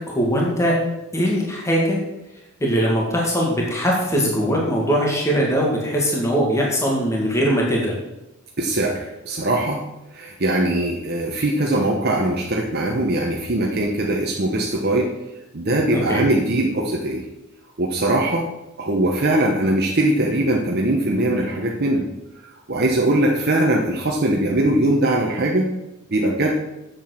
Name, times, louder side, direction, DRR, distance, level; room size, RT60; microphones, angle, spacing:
voice 1, 0.1-0.8 1.1-2.0 2.6-7.9 15.9-16.2, equal, 15° left, -3 dB, 2.0 m, -21 dB
voice 2, 8.6-9.8 10.1-15.1 15.5-17.2 17.8-18.5 18.8-22.1 22.4-25.7 26.1-26.6, right 1 dB, 50° right, 0 dB, 1.1 m, -21 dB
8.0 x 7.3 x 6.6 m, 0.92 s
head